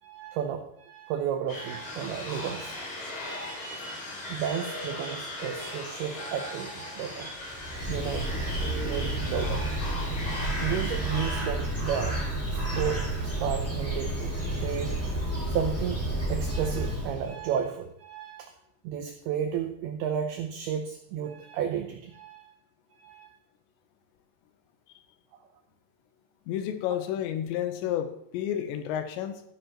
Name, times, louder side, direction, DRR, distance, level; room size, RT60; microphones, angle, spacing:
voice 1, 0.0-2.9 3.3-3.7 4.3-7.3 7.9-8.3 8.8-10.0 10.2-12.2 12.5-13.1 13.4-15.0 15.5-16.0 16.3-18.5 18.8-22.5 23.0-23.3, right 8 dB, 85° right, 5 dB, 2.2 m, -33 dB
sound 1, 1.5-11.4, left 1 dB, 60° left, 6.6 m, -38 dB
Bird, 7.4-17.4, right 1 dB, 5° left, 1.1 m, -31 dB
voice 2, 26.5-29.4, left 10 dB, 80° left, 8 dB, 3.0 m, -31 dB
14.0 x 10.0 x 2.9 m, 0.72 s
omnidirectional pair, 5.4 m